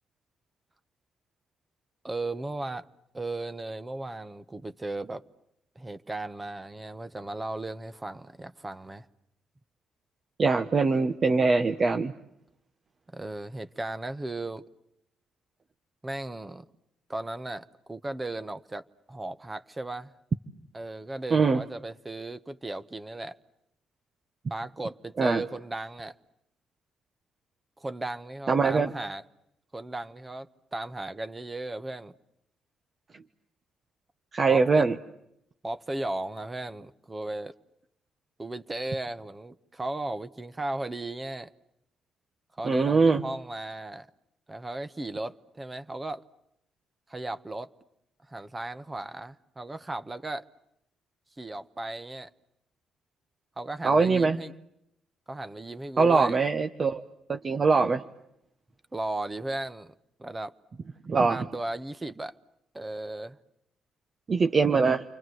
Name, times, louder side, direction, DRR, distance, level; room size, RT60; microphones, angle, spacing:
voice 1, 2.0-2.9 3.1-5.2 5.7-9.1 13.1-14.6 16.0-16.6 17.1-20.1 20.7-23.4 24.5-26.1 27.8-29.2 29.7-32.2 34.5-34.8 35.6-37.5 38.4-41.5 42.6-44.1 44.5-46.2 47.1-47.7 48.3-50.5 51.4-52.3 53.6-54.5 55.3-56.4 58.9-59.9 60.2-60.5 61.3-62.3 62.7-63.4, right 2 dB, 20° right, 1.2 m, -36 dB
voice 2, 10.4-12.1 21.3-21.6 25.2-25.4 28.5-28.9 34.3-35.0 42.6-43.2 53.8-54.4 56.0-57.0 57.3-58.0 61.1-61.5 64.3-65.0, right 4 dB, 40° right, 1.2 m, -22 dB
29.5 x 24.5 x 7.8 m
cardioid pair, 90°, 0 cm